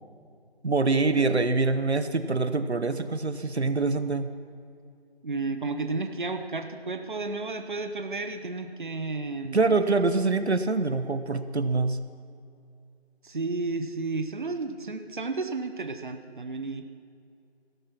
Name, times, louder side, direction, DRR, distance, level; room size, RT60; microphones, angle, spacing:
voice 1, 0.6-4.3 9.5-12.0, right 3 dB, 80° right, 11 dB, 1.1 m, -25 dB
voice 2, 5.2-9.6 13.2-16.8, right 3 dB, 50° right, 7 dB, 1.0 m, -32 dB
17.5 x 13.0 x 5.9 m, 2.4 s
figure-of-eight pair, 165°, 32 cm